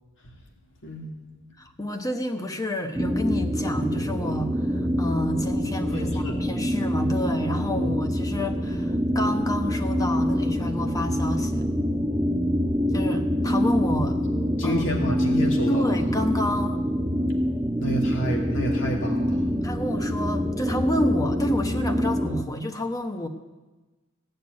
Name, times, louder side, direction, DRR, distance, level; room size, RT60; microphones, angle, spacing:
voice 1, 1.6-11.7 12.9-14.2 14.6-14.8 15.7-16.8 19.6-23.3, left 1 dB, 15° left, 5 dB, 1.1 m, -29 dB
sound 1, 2.9-22.4, equal, 10° right, 0.6 m, -25 dB
voice 2, 5.9-6.4 7.7-8.0 14.6-16.0 17.8-19.5, equal, 65° left, 0 dB, 2.7 m, -30 dB
16.0 x 6.7 x 9.7 m, 1.2 s
head